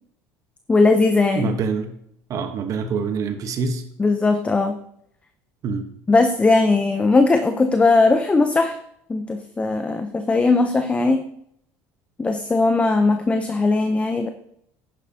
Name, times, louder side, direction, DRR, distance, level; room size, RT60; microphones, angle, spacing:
voice 1, 0.7-1.5 4.0-4.8 6.1-8.8 9.1-11.2 12.2-14.3, left 3 dB, 20° left, 7 dB, 0.7 m, -18 dB
voice 2, 1.3-1.9 2.3-3.8 5.6-5.9, right 5 dB, 50° right, 7 dB, 1.2 m, -25 dB
10.5 x 9.8 x 2.9 m, 0.72 s
supercardioid pair, 95°, 7 cm